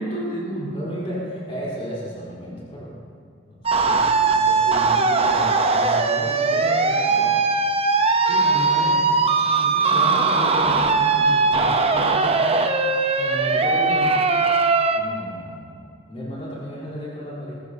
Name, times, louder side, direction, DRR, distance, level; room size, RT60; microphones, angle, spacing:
voice 1, 0.0-0.8 7.9-9.2 9.6-12.6 13.2-14.1, right 1 dB, 45° left, -6 dB, 3.7 m, -33 dB
voice 2, 0.7-2.9 3.4-7.4 9.9-11.7 13.6-14.0 14.9-17.6, equal, 30° left, -7 dB, 3.8 m, -34 dB
sound 1, 3.7-15.0, right 4 dB, 30° right, 0.7 m, -19 dB
20.0 x 13.5 x 2.8 m, 2.3 s
head